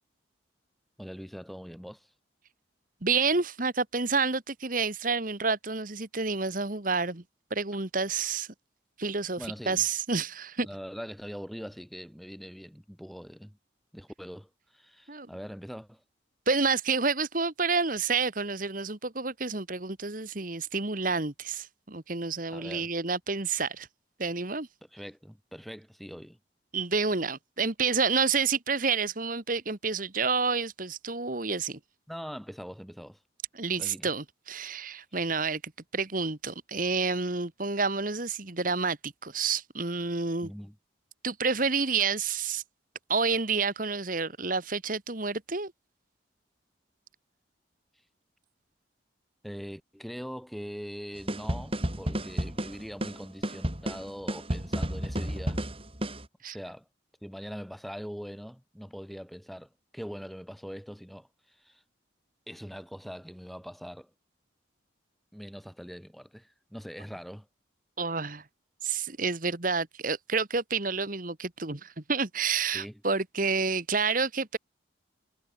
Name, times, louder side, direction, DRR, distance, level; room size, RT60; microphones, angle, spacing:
voice 1, 1.0-2.1 9.4-9.9 10.6-13.6 13.9-16.0 22.5-22.9 24.9-26.4 32.1-33.2 33.8-34.1 40.4-40.8 49.4-55.6 56.4-56.9 57.2-61.8 62.5-64.1 65.3-67.5 72.7-73.0, equal, ahead, 5.8 m, -42 dB
voice 2, 3.0-7.2 7.5-8.5 9.0-10.7 15.1-15.3 16.5-23.9 24.2-24.7 26.7-31.8 33.5-40.5 41.2-42.6 43.1-45.7 56.4-56.5 68.0-68.4 68.8-74.6, right 4 dB, 45° right, 1.7 m, -29 dB
sound 1, 51.3-56.3, equal, 30° right, 7.2 m, -32 dB
head